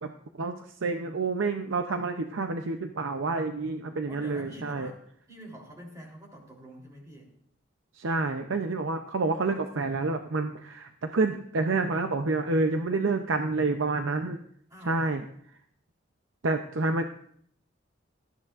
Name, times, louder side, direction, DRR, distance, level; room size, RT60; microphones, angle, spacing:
voice 1, 0.0-4.9 7.9-14.4 14.8-15.2 16.4-17.1, right 3 dB, 80° right, 6 dB, 0.6 m, -28 dB
voice 2, 4.1-5.0 5.3-7.3 14.7-15.1, equal, 15° right, -1 dB, 3.4 m, -46 dB
18.5 x 13.5 x 2.5 m, 0.64 s
head